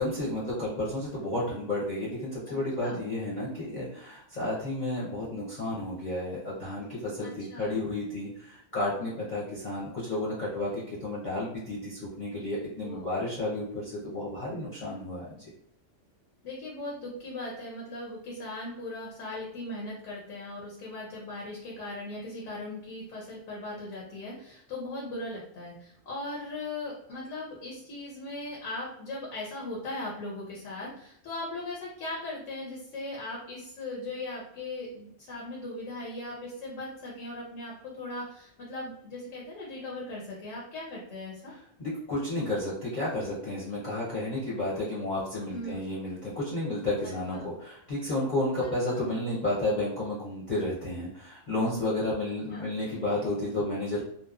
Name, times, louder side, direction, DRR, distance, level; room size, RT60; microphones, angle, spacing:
voice 1, 0.0-15.4 41.5-54.0, left 1 dB, 45° left, -9 dB, 0.7 m, -32 dB
voice 2, 2.5-3.0 7.2-7.8 12.8-13.2 16.4-41.5 45.5-45.8 47.0-47.5 48.9-49.0 52.5-52.6, left 2 dB, 85° left, -4 dB, 1.1 m, -39 dB
2.8 x 2.0 x 2.4 m, 0.72 s
omnidirectional pair, 1.3 m